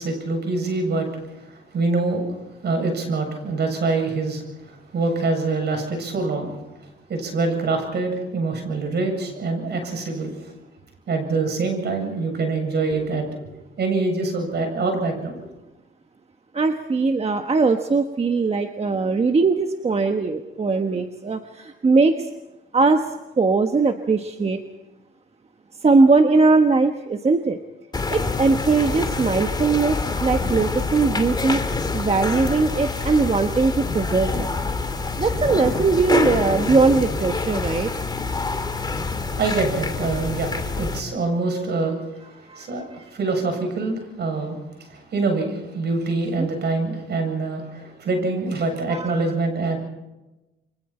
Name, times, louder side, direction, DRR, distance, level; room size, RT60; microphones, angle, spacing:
voice 1, 0.0-2.4 2.6-6.5 7.1-10.5 11.1-13.3 13.8-15.5 38.4-38.9 39.1-42.2 42.5-49.8, right 3 dB, 60° right, 4 dB, 7.7 m, -25 dB
voice 2, 16.5-22.3 22.7-23.1 23.4-24.6 25.8-27.6 28.1-31.6 31.9-34.5 35.2-37.9 42.5-43.0 46.4-46.5 48.9-49.2, right 4 dB, 30° right, 6 dB, 1.3 m, -20 dB
sound 1, 27.9-41.0, left 3 dB, 20° left, 2.3 m, -26 dB
29.5 x 24.0 x 4.4 m, 1.0 s
cardioid pair, 90°, 20 cm